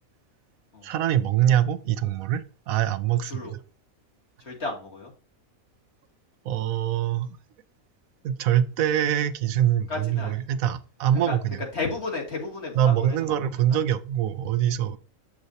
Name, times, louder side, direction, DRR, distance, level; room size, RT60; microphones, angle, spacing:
voice 1, 0.8-3.6 6.4-7.4 8.2-11.6 12.8-15.0, right 10 dB, 75° right, 1.0 m, -24 dB
voice 2, 4.4-5.1 9.9-10.6 11.3-11.4 11.7-13.8, left 3 dB, 50° left, 2.5 m, -34 dB
7.9 x 7.2 x 2.7 m
omnidirectional pair, 1.5 m